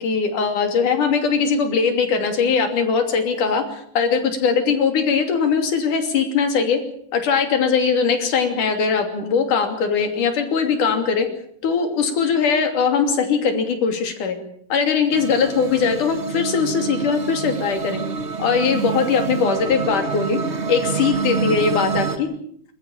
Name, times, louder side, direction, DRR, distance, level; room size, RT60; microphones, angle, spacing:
voice 1, 0.0-6.8 7.1-11.3 11.6-14.4 14.7-18.0 18.4-20.4 20.7-22.3, left 5 dB, 75° left, 6 dB, 4.4 m, -20 dB
sound 1, 15.1-22.2, right 5 dB, 40° right, 0.9 m, -27 dB
27.0 x 14.0 x 8.8 m, 0.65 s
omnidirectional pair, 3.6 m